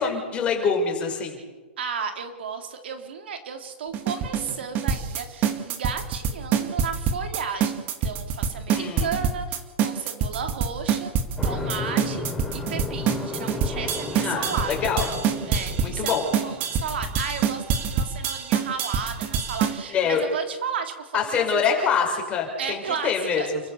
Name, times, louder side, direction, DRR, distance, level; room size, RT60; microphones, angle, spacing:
voice 1, 0.0-1.4 8.7-9.1 14.1-15.1 15.8-16.2 19.9-20.2 21.1-23.4, left 6 dB, 20° left, 1 dB, 6.1 m, -25 dB
voice 2, 1.8-11.1 11.4-12.3 12.5-14.9 15.5-21.6 22.6-23.5, right 6 dB, 75° right, 6 dB, 3.5 m, -33 dB
sound 1, 3.9-19.8, right 7 dB, 30° right, 2.0 m, -25 dB
sound 2, 11.4-17.2, left 3 dB, 5° left, 4.0 m, -34 dB
29.5 x 15.0 x 7.1 m, 1.2 s
hypercardioid pair, 145°, 6 cm